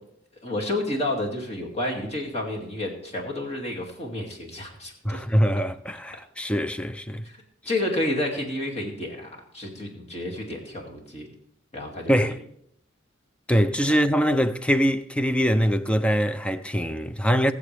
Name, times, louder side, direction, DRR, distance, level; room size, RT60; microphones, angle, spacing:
voice 1, 0.4-5.2 7.2-7.4 7.7-11.3 11.7-12.3 13.9-14.0, left 1 dB, 30° left, 2.4 m, -30 dB
voice 2, 5.0-7.2 12.1-12.4 13.5-17.5, equal, 5° left, 0.5 m, -23 dB
21.0 x 7.4 x 3.4 m
head